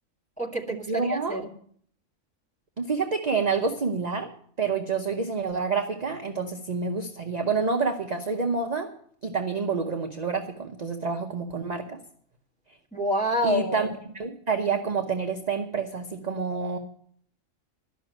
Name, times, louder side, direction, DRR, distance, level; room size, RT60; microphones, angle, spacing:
voice 1, 0.4-1.5 12.9-13.9, equal, 5° left, -2 dB, 1.5 m, -27 dB
voice 2, 0.9-1.4 2.8-4.3 4.6-8.9 9.2-12.0 13.4-13.9 14.1-16.8, right 5 dB, 35° right, 4 dB, 0.8 m, -28 dB
12.5 x 6.2 x 8.8 m, 0.62 s
omnidirectional pair, 1.4 m